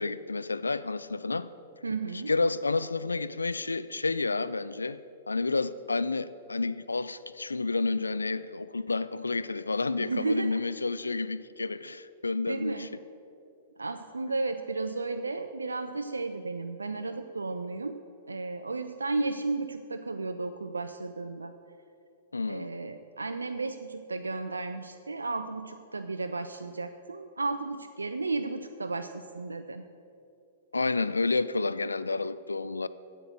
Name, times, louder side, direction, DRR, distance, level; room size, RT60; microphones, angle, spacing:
voice 1, 0.0-1.5 2.1-5.0 5.3-12.9 22.3-22.7 30.7-32.9, left 3 dB, 85° left, 0.3 m, -30 dB
voice 2, 1.8-2.3 9.9-10.6 12.5-12.9 13.8-17.9 18.3-21.5 22.5-29.8, right 3 dB, 85° right, 0.4 m, -33 dB
8.7 x 7.8 x 6.4 m
figure-of-eight pair, 110°, 0 cm